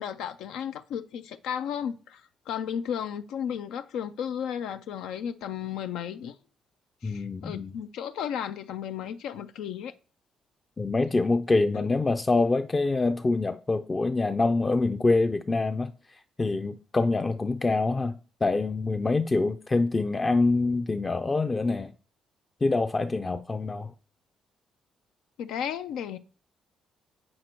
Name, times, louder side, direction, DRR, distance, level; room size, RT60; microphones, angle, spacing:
voice 1, 0.0-6.4 7.0-9.9 11.7-11.9 25.4-26.2, left 8 dB, 85° left, 0.4 m, -34 dB
voice 2, 7.0-7.7 10.8-21.9 22.6-23.9, left 3 dB, 25° left, 0.4 m, -25 dB
7.5 x 5.1 x 4.4 m
cardioid pair, 90°, 0 cm